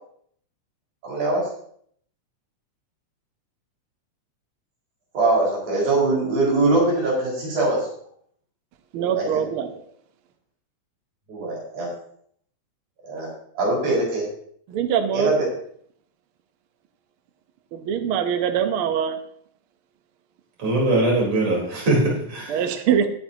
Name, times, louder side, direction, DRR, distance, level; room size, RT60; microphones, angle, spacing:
voice 1, 1.0-1.4 5.1-7.8 9.1-9.4 11.3-11.9 13.0-14.2 15.1-15.5, right 2 dB, 80° right, -5 dB, 6.5 m, -22 dB
voice 2, 8.9-9.7 14.7-15.3 17.7-19.1 22.5-23.1, right 8 dB, 65° right, 7 dB, 1.4 m, -23 dB
voice 3, 20.6-22.8, right 2 dB, 50° right, -3 dB, 4.9 m, -22 dB
19.0 x 8.8 x 2.9 m, 0.64 s
omnidirectional pair, 3.4 m